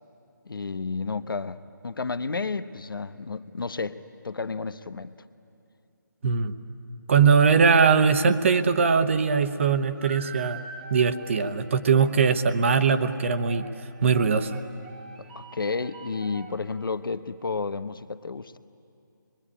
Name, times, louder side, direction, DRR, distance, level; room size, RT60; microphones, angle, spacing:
voice 1, 0.5-1.6 1.8-5.2 15.3-18.6, left 4 dB, 85° left, 12 dB, 1.0 m, -31 dB
voice 2, 6.2-6.5 7.1-10.6 10.9-13.6 14.0-14.6, right 5 dB, 35° right, 10 dB, 1.0 m, -21 dB
sound 1, 9.9-17.0, right 4 dB, 20° right, 1.4 m, -45 dB
26.5 x 22.5 x 9.9 m, 2.6 s
hypercardioid pair, 165°, 11 cm